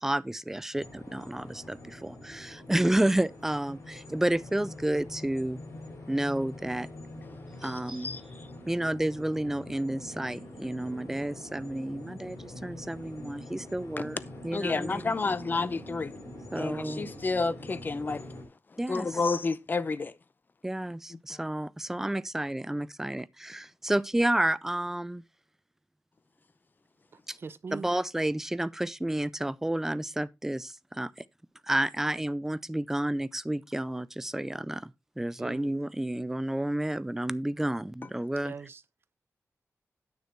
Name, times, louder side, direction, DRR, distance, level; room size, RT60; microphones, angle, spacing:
voice 1, 0.0-5.6 6.1-6.9 7.6-8.1 8.7-14.2 14.4-15.1 16.5-17.1 18.8-19.2 20.6-25.2 27.3-27.4 27.7-31.1 31.7-34.9 35.2-38.5, right 1 dB, 5° right, 0.4 m, -30 dB
sound 1, 0.7-18.4, left 1 dB, 65° left, 5.2 m, -45 dB
voice 2, 7.6-8.2 14.0-14.1 14.5-16.2 16.6-18.3 18.9-20.1 21.3-21.4, left 4 dB, 35° left, 0.6 m, -30 dB
voice 3, 27.1-27.9 35.4-35.7 38.4-38.8, right 5 dB, 45° right, 0.7 m, -41 dB
9.5 x 6.5 x 4.4 m
wide cardioid pair, 145°, 5 cm